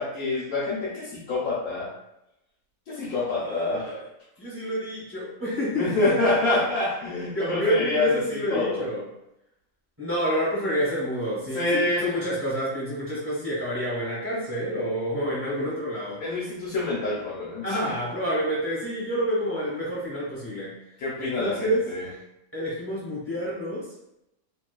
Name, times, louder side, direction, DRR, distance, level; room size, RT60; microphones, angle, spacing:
voice 1, 0.0-1.9 2.9-3.9 5.7-8.1 8.5-8.8 11.5-12.1 16.2-17.8 21.0-22.1, left 2 dB, 70° left, -6 dB, 1.0 m, -26 dB
voice 2, 3.3-4.0 4.4-5.9 7.3-9.0 10.0-16.2 17.6-20.8 21.2-21.9 22.5-23.9, equal, 20° right, -8 dB, 0.6 m, -28 dB
2.9 x 2.1 x 2.2 m, 0.85 s
omnidirectional pair, 1.7 m